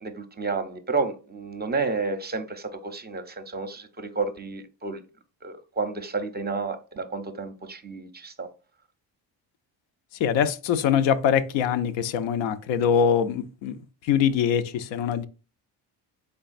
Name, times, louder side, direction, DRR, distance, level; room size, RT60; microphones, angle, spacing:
voice 1, 0.0-5.0 5.4-8.5, right 4 dB, 25° right, 0.5 m, -31 dB
voice 2, 10.2-13.8 14.0-15.3, left 8 dB, 90° left, 0.5 m, -23 dB
3.8 x 3.4 x 2.5 m
cardioid pair, 85°, 44 cm